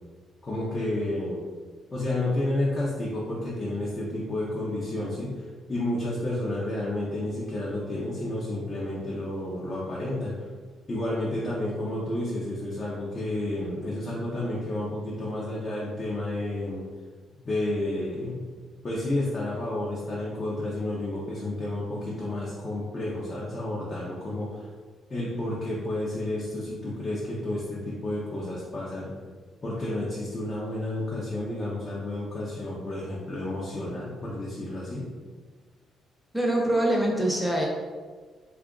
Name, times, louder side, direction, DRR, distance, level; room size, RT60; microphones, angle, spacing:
voice 1, 0.4-1.4 1.9-10.5 10.9-16.8 17.4-18.4 18.8-24.7 25.1-29.1 29.6-35.0, left 1 dB, 35° left, -7 dB, 0.7 m, -31 dB
voice 2, 36.3-37.7, right 1 dB, ahead, -2 dB, 0.8 m, -24 dB
2.8 x 2.4 x 3.6 m, 1.5 s
cardioid pair, 90°, 0 cm